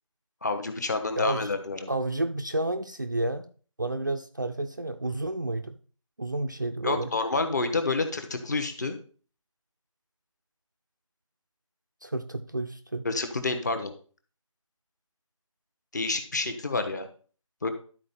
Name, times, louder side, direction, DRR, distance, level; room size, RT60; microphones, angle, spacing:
voice 1, 0.4-1.9 6.8-9.0 13.0-13.9 15.9-17.1 17.6-17.7, left 3 dB, 30° left, 0.9 m, -28 dB
voice 2, 1.2-1.5 1.9-3.4 3.8-5.7 6.2-7.1 12.0-13.0, right 2 dB, 35° right, 0.4 m, -30 dB
11.5 x 4.4 x 4.1 m
figure-of-eight pair, 170°, 18 cm